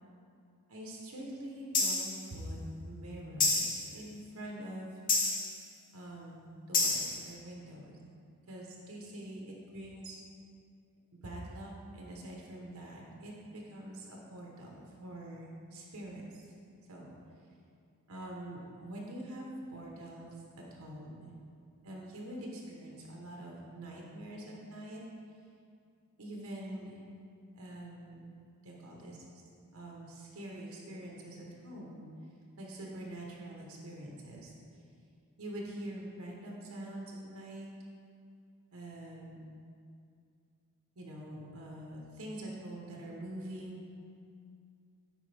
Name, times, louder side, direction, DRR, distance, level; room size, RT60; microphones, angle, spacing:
voice 1, 0.7-2.6 2.8-4.9 5.9-8.0 8.5-10.2 11.1-16.4 16.9-17.2 18.1-21.3 21.8-25.0 26.2-27.0 27.5-28.3 28.6-29.4 29.7-32.0 32.6-34.5 35.4-37.7 38.7-39.4 41.0-43.9, right 1 dB, 75° right, -2 dB, 1.0 m, -45 dB
sound 1, 1.7-2.2 3.4-3.9 5.1-5.6 6.7-7.2, left 3 dB, 40° left, 0.9 m, -29 dB
9.0 x 4.9 x 3.4 m, 2.4 s
head